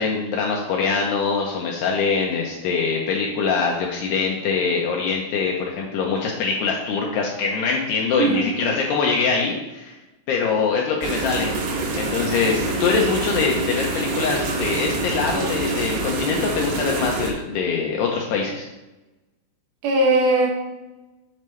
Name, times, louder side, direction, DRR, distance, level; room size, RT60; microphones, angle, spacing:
voice 1, 0.0-9.9 10.3-11.5 11.9-18.7, left 5 dB, 80° left, -1 dB, 2.4 m, -23 dB
voice 2, 8.2-8.5 19.8-20.5, right 2 dB, 85° right, -2 dB, 4.3 m, -19 dB
sound 1, 11.0-17.3, right 3 dB, 70° right, 2.8 m, -26 dB
8.5 x 7.2 x 3.2 m, 1.0 s
omnidirectional pair, 5.6 m